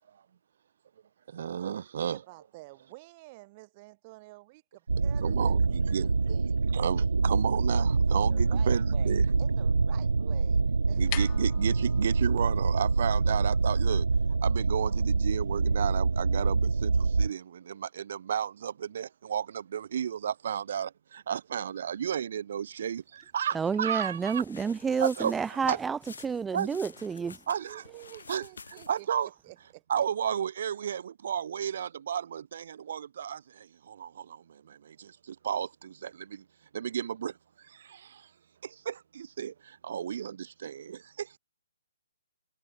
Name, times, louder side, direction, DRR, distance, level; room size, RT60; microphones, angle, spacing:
voice 1, 1.3-2.2 5.2-6.1 6.7-9.2 10.9-14.1 14.4-24.4 25.0-25.3 25.7-25.8 26.5-26.8 27.5-27.8 28.3-28.4 28.9-29.3 29.9-36.4 36.7-38.3 38.6-41.4, right 8 dB, 55° right, 1.8 m, -33 dB
voice 2, 2.0-6.6 8.3-11.0 27.6-30.0, right 23 dB, 30° right, 3.3 m, -50 dB
sound 1, 4.9-17.3, right 4 dB, 80° right, 0.3 m, -26 dB
sound 2, 10.8-16.8, left 26 dB, 30° left, 6.5 m, -46 dB
voice 3, 23.5-27.4, right 6 dB, 10° right, 0.6 m, -30 dB
sound 3, 24.1-29.1, left 5 dB, 75° left, 2.4 m, -50 dB
hypercardioid pair, 145°, 0 cm